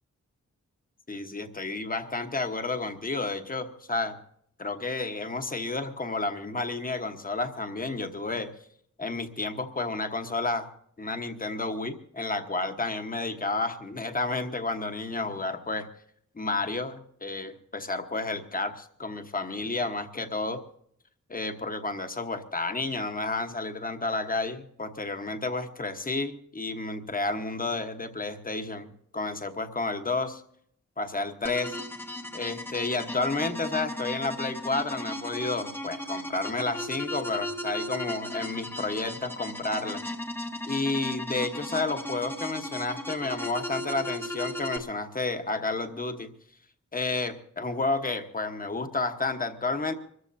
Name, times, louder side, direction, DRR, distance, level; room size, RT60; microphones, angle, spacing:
voice 1, 1.1-4.2 4.6-8.5 9.0-10.7 11.0-15.9 16.3-20.6 21.3-30.4 31.0-31.8 32.3-40.0 40.6-46.3 46.9-49.9, left 3 dB, 30° left, 7 dB, 1.2 m, -31 dB
sound 1, 31.4-44.8, left 1 dB, 5° left, 1.1 m, -36 dB
25.5 x 14.5 x 2.7 m, 0.69 s
wide cardioid pair, 130°, 30 cm